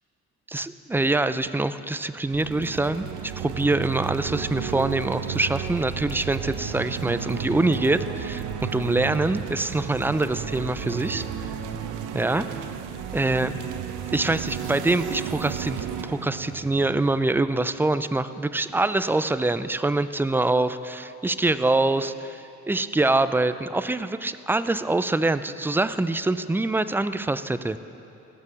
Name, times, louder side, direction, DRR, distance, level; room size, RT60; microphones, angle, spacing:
voice 1, 0.5-11.2 12.1-12.5 13.1-13.5 14.1-27.8, right 2 dB, 5° right, 13 dB, 0.3 m, -24 dB
sound 1, 2.3-17.7, right 8 dB, 85° right, 0.8 m, -33 dB
15.5 x 6.8 x 7.2 m, 2.9 s
cardioid pair, 90°, 30 cm